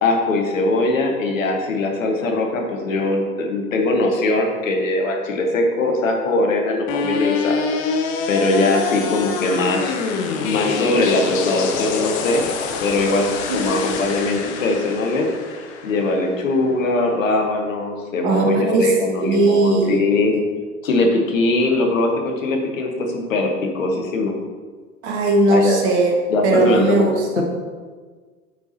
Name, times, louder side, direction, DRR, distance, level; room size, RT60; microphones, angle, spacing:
voice 1, 0.0-7.9 8.3-12.5 12.8-15.3 15.5-20.4 20.8-24.4 25.5-25.8 26.3-27.4, left 2 dB, 65° left, 2 dB, 1.1 m, -21 dB
sound 1, 6.9-16.9, left 5 dB, 20° left, 0.3 m, -26 dB
voice 2, 13.5-13.8 18.2-20.1 25.0-27.4, right 2 dB, 50° right, 2 dB, 1.1 m, -19 dB
8.4 x 4.6 x 2.7 m, 1.5 s
figure-of-eight pair, 85°, 43 cm